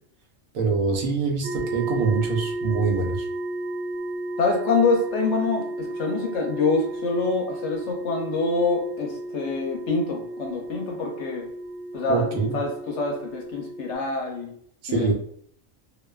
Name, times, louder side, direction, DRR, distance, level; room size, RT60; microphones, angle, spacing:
voice 1, 0.5-3.3 12.1-12.6 14.8-15.1, right 4 dB, 90° right, 2 dB, 1.1 m, -24 dB
sound 1, 1.4-13.9, right 1 dB, 65° right, 0.9 m, -33 dB
voice 2, 4.4-11.5 11.9-12.3 12.5-14.5 14.9-15.1, left 3 dB, 65° left, 1 dB, 0.8 m, -25 dB
2.5 x 2.2 x 2.2 m, 0.63 s
omnidirectional pair, 1.4 m